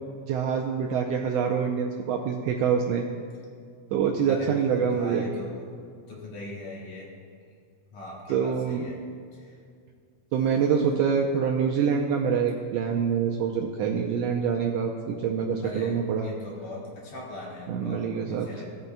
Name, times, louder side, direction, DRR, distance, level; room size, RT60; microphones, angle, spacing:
voice 1, 0.3-3.0 3.9-5.3 8.3-8.8 10.3-16.3 17.7-18.5, right 7 dB, 75° right, 1 dB, 1.5 m, -25 dB
voice 2, 4.3-5.7 6.1-7.1 7.9-9.0 9.3-9.5 15.6-18.6, left 1 dB, 65° left, -6 dB, 3.4 m, -40 dB
17.5 x 8.1 x 2.2 m, 2.2 s
omnidirectional pair, 3.4 m